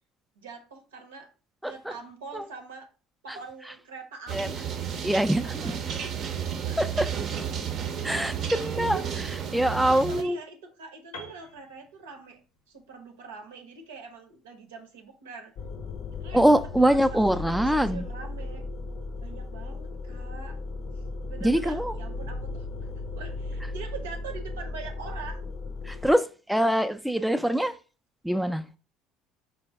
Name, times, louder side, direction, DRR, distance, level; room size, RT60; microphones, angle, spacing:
voice 1, 0.4-1.3 1.6-2.9 3.2-4.6 5.4-5.8 6.6-6.8 8.8-9.0 9.9-12.4 12.7-15.5 16.1-18.6 19.2-20.6 20.9-22.7 23.1-25.4 25.9-26.0, right 5 dB, 85° right, 0.7 m, -43 dB
voice 2, 1.6-1.9 2.3-2.4 4.3-4.5 5.0-5.6 6.8-7.1 8.0-9.0 9.5-10.4 16.3-18.1 21.4-21.9 25.8-27.7 28.2-28.6, right 1 dB, 5° right, 0.3 m, -24 dB
sound 1, 4.3-10.2, right 8 dB, 55° right, 0.5 m, -32 dB
Piano, 11.1-15.1, left 2 dB, 85° left, 0.7 m, -49 dB
sound 2, 15.6-26.1, left 3 dB, 55° left, 0.5 m, -36 dB
4.3 x 2.0 x 3.4 m
hypercardioid pair, 70°, 0 cm